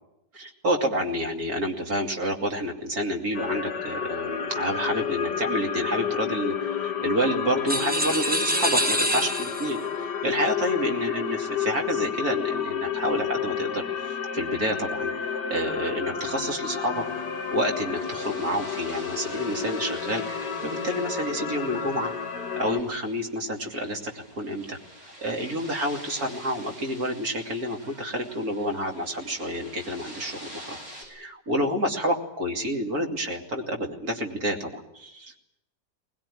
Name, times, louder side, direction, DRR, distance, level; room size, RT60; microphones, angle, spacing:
voice 1, 0.3-17.0 17.5-22.1 22.6-35.4, equal, 60° right, 2 dB, 3.2 m, -29 dB
sound 1, 3.3-22.8, left 7 dB, 80° left, 2.2 m, -31 dB
sound 2, 7.7-9.8, equal, 5° right, 1.2 m, -26 dB
sound 3, 16.9-31.0, equal, 45° right, 8.1 m, -46 dB
21.0 x 20.0 x 10.0 m, 0.87 s
omnidirectional pair, 1.8 m